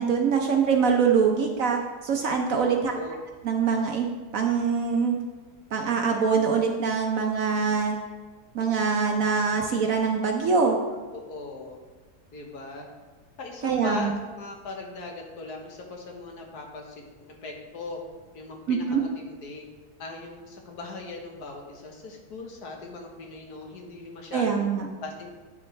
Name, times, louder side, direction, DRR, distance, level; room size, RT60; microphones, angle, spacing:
voice 1, 0.0-2.9 3.4-4.1 4.3-5.2 5.7-8.0 8.5-10.8 13.6-14.1 18.7-19.0 24.3-24.9, right 5 dB, 60° right, 2 dB, 0.9 m, -24 dB
voice 2, 2.6-3.1 11.1-11.8 12.3-12.9 13.4-18.0 18.3-19.7 20.0-24.7 25.0-25.3, left 3 dB, 65° left, 1 dB, 1.6 m, -39 dB
8.8 x 7.3 x 3.2 m, 1.3 s
omnidirectional pair, 1.9 m